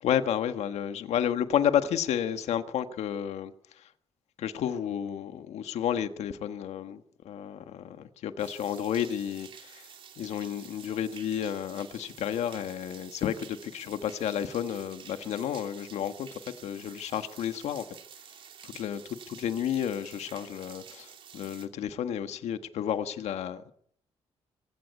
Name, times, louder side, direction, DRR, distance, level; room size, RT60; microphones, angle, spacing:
voice 1, 0.0-3.9 4.4-9.9 10.2-17.8 18.6-19.0 19.3-23.7, left 9 dB, 85° left, 1.5 m, -31 dB
sound 1, 8.4-21.7, right 8 dB, 50° right, 3.0 m, -50 dB
25.0 x 15.0 x 9.4 m
cardioid pair, 170°, 11 cm